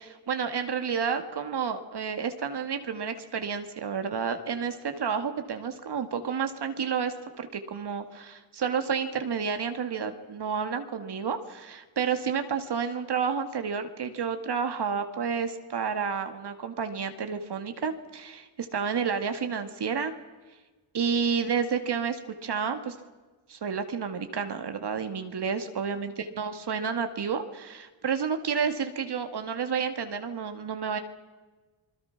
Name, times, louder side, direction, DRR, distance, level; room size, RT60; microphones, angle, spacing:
voice 1, 0.0-20.1 20.9-23.0 23.5-31.0, right 6 dB, 55° right, 7 dB, 2.2 m, -30 dB
28.5 x 20.5 x 6.0 m, 1.3 s
cardioid pair, 60°, 47 cm